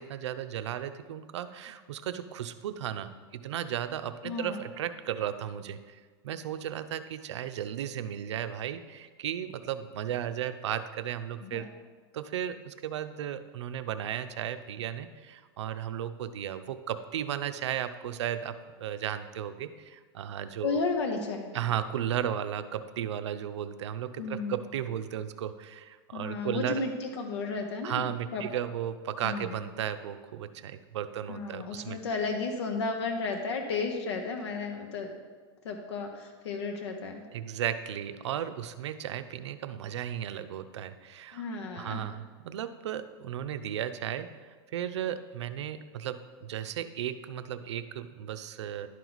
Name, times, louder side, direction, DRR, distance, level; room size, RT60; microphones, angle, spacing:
voice 1, 0.0-6.0 6.2-11.7 12.1-20.8 21.5-26.8 27.8-32.0 37.3-41.4 41.8-44.3 44.7-48.9, right 10 dB, 85° right, 11 dB, 0.5 m, -35 dB
voice 2, 4.2-4.6 11.4-11.6 20.6-21.5 24.2-24.6 26.1-28.1 28.3-28.4 29.2-29.6 31.3-35.1 35.6-37.2 41.3-42.1, left 4 dB, 75° left, 3 dB, 1.0 m, -33 dB
11.0 x 4.6 x 4.0 m, 1.5 s
supercardioid pair, 160°, 14 cm